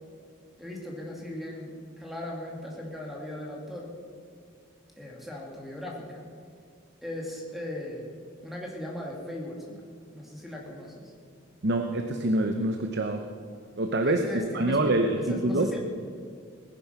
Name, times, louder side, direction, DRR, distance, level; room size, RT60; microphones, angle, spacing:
voice 1, 0.6-3.9 5.0-6.2 7.0-8.1 8.4-9.8 10.1-11.1 14.0-15.8, left 1 dB, ahead, -2 dB, 2.4 m, -38 dB
voice 2, 11.6-13.2 13.8-14.3 14.5-15.7, right 2 dB, 50° right, 5 dB, 0.8 m, -25 dB
18.5 x 10.5 x 5.7 m, 2.2 s
head